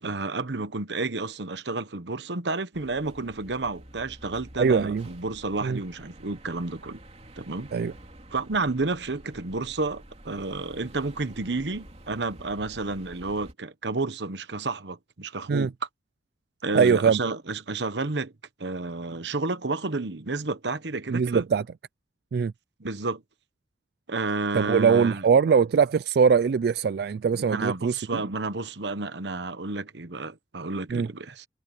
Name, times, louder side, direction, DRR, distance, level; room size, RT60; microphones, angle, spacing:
voice 1, 0.0-7.0 7.4-7.7 8.3-15.7 16.6-18.3 18.6-21.4 22.8-23.2 24.1-25.2 27.3-31.5, right 3 dB, 80° right, 1.2 m, -31 dB
sound 1, 2.7-13.5, right 1 dB, 40° right, 3.1 m, -49 dB
voice 2, 4.6-5.1 5.6-5.8 7.7-7.9 15.5-15.7 16.7-17.2 21.1-21.6 22.3-22.5 24.5-28.2 30.9-31.1, right 6 dB, 65° right, 0.3 m, -22 dB
head